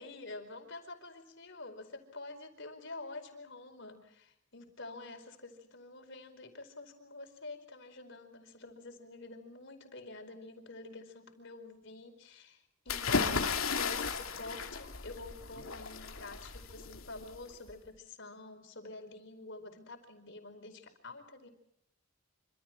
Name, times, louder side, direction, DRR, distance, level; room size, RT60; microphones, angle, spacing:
voice 1, 0.0-21.5, left 2 dB, 60° left, 6 dB, 4.8 m, -48 dB
sound 1, 12.9-17.7, left 5 dB, 85° left, 2.6 m, -35 dB
26.5 x 26.5 x 4.6 m, 0.76 s
head